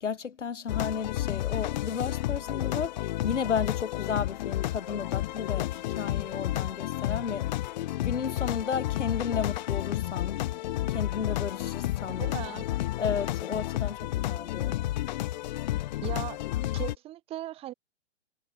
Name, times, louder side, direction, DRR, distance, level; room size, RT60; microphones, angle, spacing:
voice 1, 0.0-7.5 8.0-10.4 10.9-12.2 13.0-14.8, left 6 dB, 80° left, 1.2 m, -33 dB
sound 1, 0.7-16.9, left 15 dB, 40° left, 0.7 m, -31 dB
voice 2, 12.2-12.7 16.0-16.4 16.7-17.7, right 14 dB, 15° right, 0.9 m, -37 dB
figure-of-eight pair, 125°, 36 cm